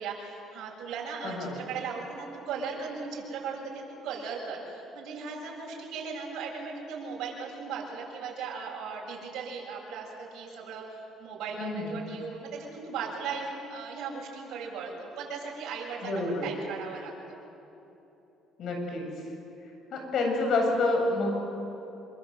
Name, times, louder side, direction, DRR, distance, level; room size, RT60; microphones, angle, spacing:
voice 1, 0.0-17.4, right 5 dB, 70° right, -3 dB, 7.6 m, -37 dB
voice 2, 1.2-1.6 11.6-12.0 16.0-16.5 18.6-19.0 19.9-21.3, left 2 dB, 60° left, 2 dB, 7.7 m, -28 dB
27.0 x 24.5 x 8.1 m, 3.0 s
cardioid pair, 100°, 0 cm